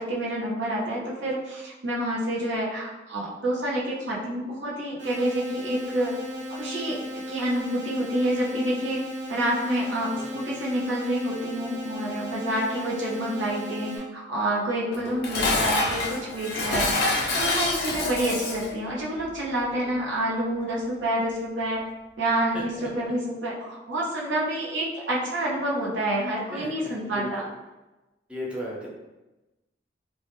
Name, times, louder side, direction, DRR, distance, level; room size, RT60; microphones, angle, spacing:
voice 1, 0.0-6.1 6.5-9.0 9.3-21.8 22.2-27.4, right 1 dB, 85° right, -4 dB, 0.7 m, -28 dB
sound 1, 5.0-14.0, left 1 dB, 60° right, 1.1 m, -36 dB
voice 2, 10.1-10.6 19.7-20.0 22.5-23.1 26.5-27.5 28.3-28.9, equal, 5° right, -4 dB, 0.4 m, -37 dB
Dishes pots and pans, 14.9-18.7, left 2 dB, 60° left, 0.4 m, -26 dB
2.1 x 2.1 x 2.9 m, 1.1 s
head